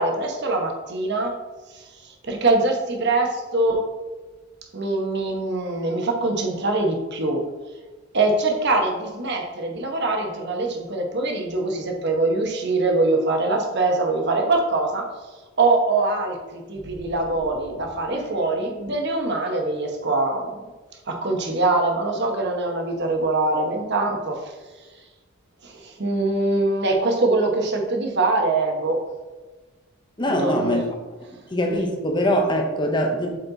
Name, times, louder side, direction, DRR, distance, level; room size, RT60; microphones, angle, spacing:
voice 1, 0.0-1.4 1.7-3.9 4.7-7.5 8.1-15.1 15.6-20.6 21.1-24.5 25.6-29.1 30.3-30.8, right 2 dB, 55° right, 2 dB, 1.1 m, -23 dB
sound 1, 16.7-19.3, right 1 dB, 70° right, 2.1 m, -45 dB
voice 2, 30.2-30.8 31.5-33.4, equal, 20° left, 2 dB, 1.0 m, -22 dB
7.7 x 4.3 x 4.0 m, 1.3 s
head